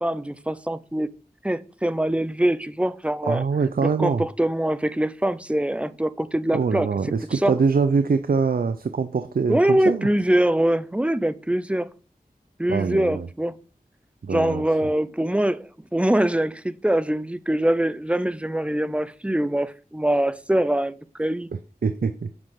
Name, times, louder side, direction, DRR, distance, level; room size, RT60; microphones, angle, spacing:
voice 1, 0.0-1.1 1.4-3.4 3.8-6.9 7.3-7.5 9.5-11.9 12.6-13.6 14.3-21.5, right 1 dB, 10° right, 0.4 m, -23 dB
voice 2, 3.3-4.2 6.5-10.1 12.7-13.3 14.2-14.6 21.8-22.3, right 5 dB, 70° right, 0.5 m, -23 dB
7.8 x 5.6 x 3.6 m
wide cardioid pair, 60°, 16 cm